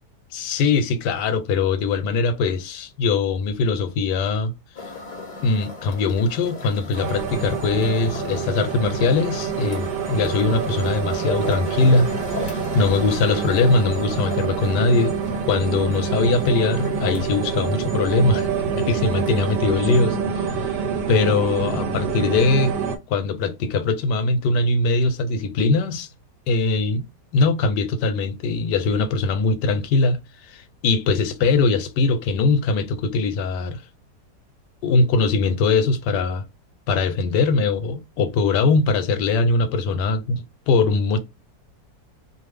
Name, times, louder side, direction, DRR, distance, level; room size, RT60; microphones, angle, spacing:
voice 1, 0.3-4.5 5.4-12.1 12.4-15.2 15.5-18.5 18.8-20.8 21.1-22.7 23.1-26.1 26.5-27.0 27.3-33.8 34.8-36.4 36.9-41.2, left 3 dB, 80° left, 1.2 m, -21 dB
sound 1, 4.7-19.6, left 3 dB, 40° left, 0.7 m, -38 dB
sound 2, 7.0-23.0, right 6 dB, 90° right, 1.3 m, -26 dB
2.5 x 2.5 x 3.2 m
omnidirectional pair, 1.8 m